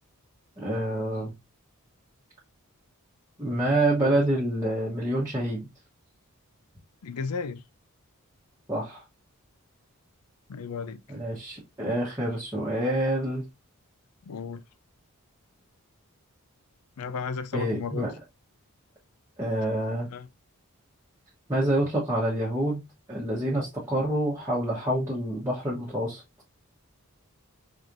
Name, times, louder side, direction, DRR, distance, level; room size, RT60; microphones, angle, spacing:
voice 1, 0.6-1.3 3.4-5.7 8.7-9.0 11.1-13.4 17.5-18.1 19.4-20.1 21.5-22.8 23.1-26.2, right 1 dB, 15° right, 1.1 m, -27 dB
voice 2, 7.0-7.6 10.5-11.0 14.3-14.6 17.0-18.1 20.1-20.3, left 5 dB, 90° left, 0.4 m, -33 dB
4.1 x 3.2 x 2.5 m
head